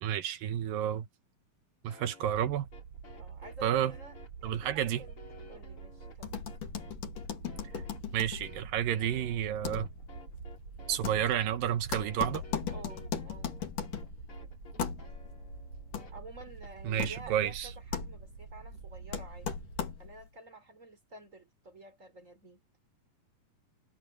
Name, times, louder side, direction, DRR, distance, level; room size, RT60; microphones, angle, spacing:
voice 1, 0.0-1.1 1.8-2.7 3.6-3.9 4.4-5.0 7.7-7.8 8.1-9.9 10.9-12.4 16.8-17.7, right 10 dB, 75° right, 2.8 m, -30 dB
sound 1, 1.9-16.7, left 4 dB, 35° left, 5.8 m, -54 dB
sound 2, 2.2-19.8, right 7 dB, 60° right, 1.8 m, -48 dB
voice 2, 3.2-4.2 4.4-5.2 5.5-6.4 12.7-13.5 16.1-19.5 20.0-22.6, right 2 dB, 20° right, 3.9 m, -50 dB
sound 3, 6.2-20.3, left 8 dB, 65° left, 4.1 m, -40 dB
omnidirectional pair, 4.1 m